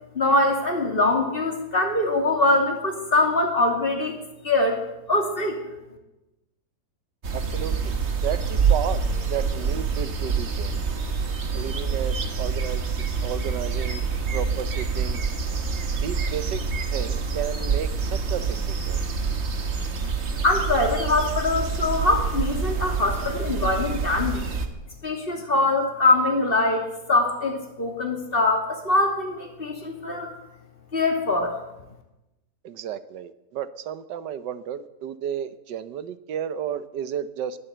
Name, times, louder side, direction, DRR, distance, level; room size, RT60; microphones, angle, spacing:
voice 1, 0.1-4.2 4.4-4.8 5.1-5.6 20.4-24.5 25.0-26.8 27.1-30.3 30.9-31.5, left 2 dB, 30° left, 2 dB, 2.5 m, -23 dB
sound 1, 7.2-24.7, right 5 dB, 45° right, 1.5 m, -26 dB
voice 2, 7.3-8.0 8.2-9.0 9.3-10.8 11.5-14.1 14.3-15.2 15.9-16.6 16.9-19.0 32.6-37.6, right 9 dB, 90° right, 13 dB, 1.5 m, -32 dB
19.5 x 8.3 x 7.9 m, 0.98 s
omnidirectional pair, 1.8 m